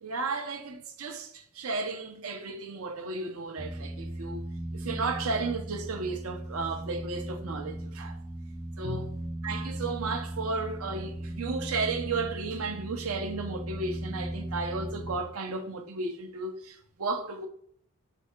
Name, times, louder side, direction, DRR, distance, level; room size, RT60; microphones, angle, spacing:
voice 1, 0.0-4.4 4.7-8.2 8.8-9.2 9.4-17.5, right 3 dB, 80° right, 0.7 m, -34 dB
sound 1, 3.6-15.2, right 1 dB, 5° right, 0.4 m, -37 dB
3.5 x 3.5 x 4.4 m
head